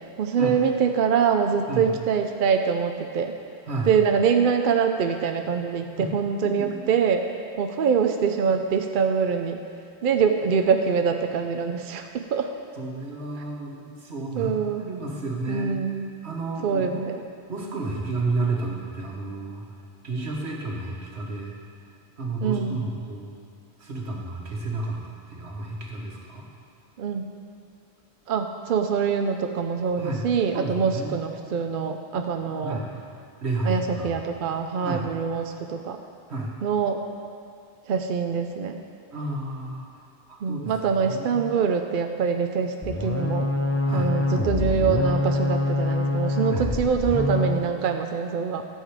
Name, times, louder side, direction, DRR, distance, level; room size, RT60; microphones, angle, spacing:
voice 1, 0.0-3.3 3.9-7.2 7.6-9.6 10.0-12.5 14.3-14.9 15.5-16.1 16.6-17.2 22.4-22.8 27.0-27.2 28.3-32.8 33.6-36.0 36.6-37.0 37.9-38.8 40.4-43.5 43.9-48.7, right 6 dB, 60° right, 5 dB, 0.7 m, -24 dB
voice 2, 12.8-14.5 14.8-15.7 16.2-17.0 17.5-19.7 20.0-21.5 22.2-23.3 23.8-26.4 30.0-30.3 30.5-31.2 32.6-32.9 33.4-34.1 34.8-35.1 36.3-36.6 39.1-39.9 40.5-40.7 41.1-41.4 43.9-44.1 46.5-46.7, right 2 dB, 80° right, -2 dB, 1.7 m, -31 dB
sound 1, 42.8-47.7, left 2 dB, 20° left, 0.4 m, -25 dB
13.0 x 7.3 x 4.9 m, 2.4 s
omnidirectional pair, 1.1 m